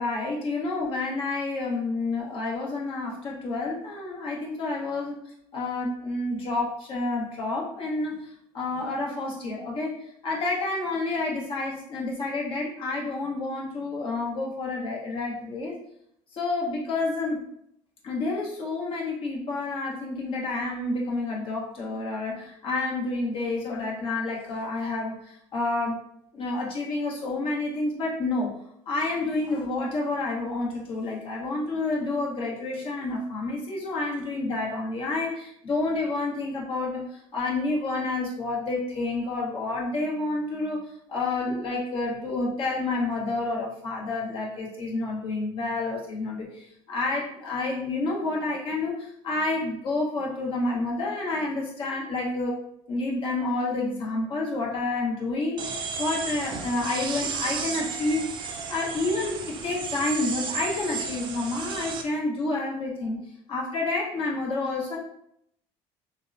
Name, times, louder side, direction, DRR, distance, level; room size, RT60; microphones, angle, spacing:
voice 1, 0.0-5.1 5.5-10.0 10.2-15.7 16.3-17.4 18.0-26.0 26.3-28.5 28.9-40.8 41.1-52.6 52.9-63.2 63.5-65.0, left 2 dB, 45° left, -3 dB, 1.0 m, -29 dB
sound 1, 55.6-62.0, right 5 dB, 40° right, 0.4 m, -33 dB
3.6 x 2.1 x 2.5 m, 0.75 s
cardioid pair, 110°, 12 cm